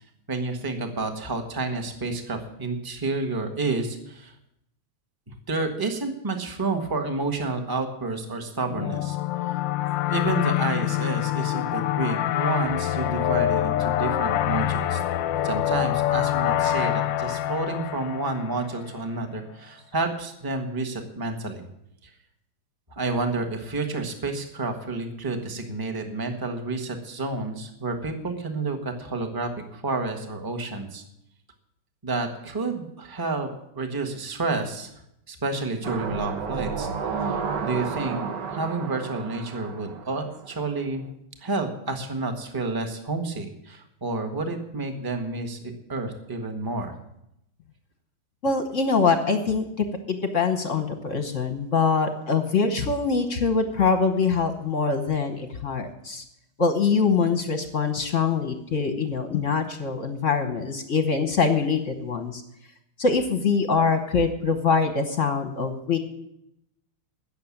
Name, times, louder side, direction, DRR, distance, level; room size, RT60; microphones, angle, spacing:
voice 1, 0.3-4.3 5.5-9.2 10.1-15.0 15.4-21.6 22.0-22.1 22.9-31.0 32.0-33.5 33.7-34.9 35.3-41.0 41.4-47.0, right 3 dB, 15° right, 5 dB, 1.1 m, -30 dB
sound 1, 8.7-19.0, left 12 dB, 70° left, 1.2 m, -25 dB
sound 2, 35.8-40.7 41.1-41.2, right 5 dB, 55° right, 1.6 m, -31 dB
voice 2, 48.4-56.2 56.6-62.4 63.0-66.0, left 5 dB, 45° left, 7 dB, 1.1 m, -24 dB
16.5 x 6.8 x 7.3 m, 0.80 s
omnidirectional pair, 2.4 m